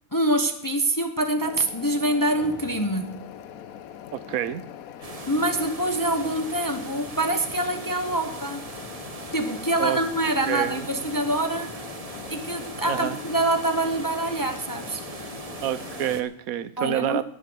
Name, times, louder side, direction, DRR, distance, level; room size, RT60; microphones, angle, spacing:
voice 1, 0.1-3.2 5.0-8.7 9.3-11.8 12.3-15.0 16.8-17.2, right 1 dB, 15° left, 6 dB, 0.9 m, -25 dB
sound 1, 1.4-16.2, left 10 dB, 85° left, 1.2 m, -42 dB
sound 2, 2.4-7.1, right 1 dB, 50° left, 5.4 m, -53 dB
voice 2, 4.1-4.6 9.8-10.0 10.5-10.8 12.9-13.1 15.6-17.2, right 11 dB, 80° right, 15 dB, 1.2 m, -27 dB
sound 3, 5.0-16.2, right 3 dB, 30° right, 1.0 m, -40 dB
20.0 x 7.7 x 6.2 m, 0.73 s
omnidirectional pair, 1.5 m